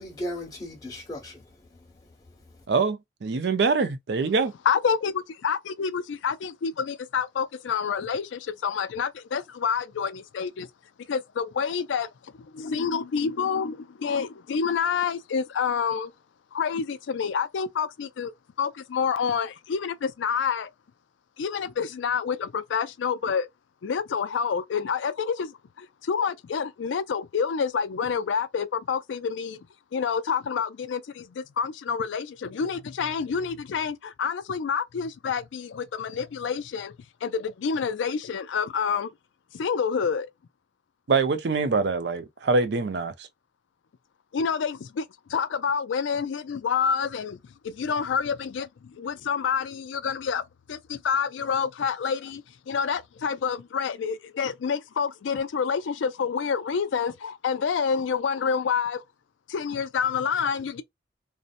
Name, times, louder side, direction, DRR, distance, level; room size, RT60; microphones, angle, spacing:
voice 1, 0.0-2.1 2.4-2.6, left 1 dB, 20° left, 1.1 m, -38 dB
voice 2, 2.7-4.5 41.1-43.3, right 4 dB, 60° right, 0.4 m, -24 dB
voice 3, 4.7-10.7 11.1-12.1 12.4-16.1 16.5-18.3 18.6-20.7 21.4-23.5 23.8-29.6 29.9-36.9 37.2-39.1 39.5-40.3 44.3-47.4 47.6-59.0 59.5-60.8, left 6 dB, 80° left, 0.4 m, -28 dB
2.6 x 2.1 x 2.5 m
head